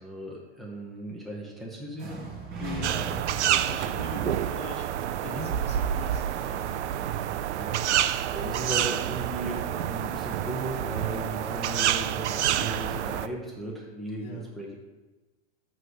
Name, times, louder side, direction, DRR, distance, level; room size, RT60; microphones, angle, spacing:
voice 1, 0.0-2.3 5.2-5.5 7.6-14.8, right 1 dB, ahead, -3 dB, 0.8 m, -37 dB
sound 1, 2.0-5.9, right 4 dB, 30° right, 1.2 m, -39 dB
voice 2, 2.6-6.9 14.2-14.4, left 2 dB, 20° left, -3 dB, 1.3 m, -41 dB
sound 2, 2.8-13.3, right 11 dB, 85° right, 0.5 m, -28 dB
7.6 x 3.2 x 6.3 m, 1.2 s
hypercardioid pair, 140°, 34 cm